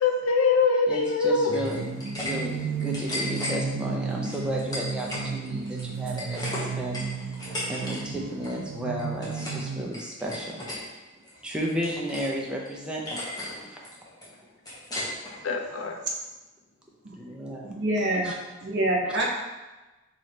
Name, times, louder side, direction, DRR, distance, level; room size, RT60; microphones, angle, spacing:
voice 1, 0.0-1.5 15.4-15.9, left 4 dB, 80° left, 4 dB, 0.5 m, -23 dB
voice 2, 0.9-6.4 6.7-7.0 7.7-10.7 11.4-13.9 17.2-17.7 18.2-18.3, right 1 dB, 5° right, -3 dB, 0.5 m, -33 dB
sound 1, 1.5-2.3 2.6-3.5 4.2-5.3 5.6-8.0 8.2-8.6 9.0-9.6 9.9-10.8 11.2-12.3 12.6-12.7 13.1-13.5 13.8-15.3, left 1 dB, 20° left, 0.9 m, -35 dB
sound 2, 1.5-9.8, right 5 dB, 75° right, 0.3 m, -33 dB
voice 3, 17.6-18.3 18.6-19.3, right 1 dB, 55° right, -1 dB, 0.7 m, -26 dB
3.0 x 3.0 x 4.2 m, 1.1 s
head